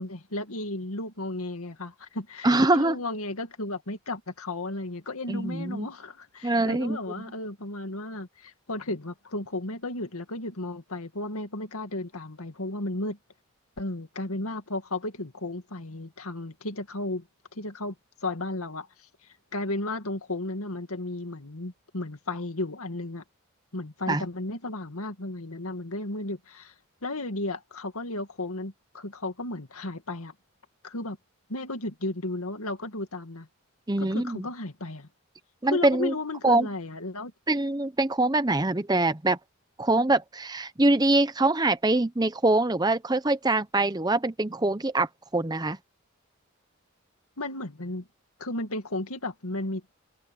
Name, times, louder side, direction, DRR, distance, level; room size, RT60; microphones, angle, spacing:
voice 1, 0.0-13.2 13.8-17.3 17.5-18.0 18.2-18.9 19.5-23.2 23.7-26.7 27.0-30.3 30.8-31.2 31.5-33.5 34.0-35.1 35.7-37.3 47.4-48.1 48.4-49.8, left 2 dB, 80° left, 2.2 m, -34 dB
voice 2, 2.4-3.0 5.3-5.9 6.4-7.0 24.1-24.2 33.9-34.5 35.6-36.1 36.4-36.7 37.5-39.4 39.8-45.8, right 2 dB, 15° right, 0.7 m, -24 dB
head